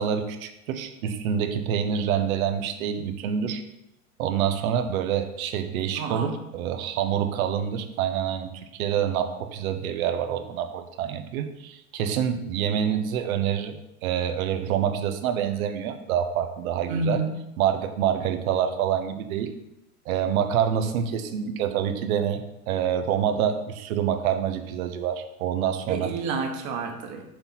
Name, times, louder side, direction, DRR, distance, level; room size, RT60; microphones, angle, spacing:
voice 1, 0.0-3.6 4.2-17.2 17.6-19.5 20.1-26.1, right 9 dB, 70° right, 8 dB, 1.0 m, -27 dB
voice 2, 6.0-6.3 16.9-17.4 25.9-27.2, right 3 dB, 40° right, 3 dB, 1.5 m, -29 dB
6.7 x 4.1 x 5.9 m, 0.89 s
hypercardioid pair, 120°, 44 cm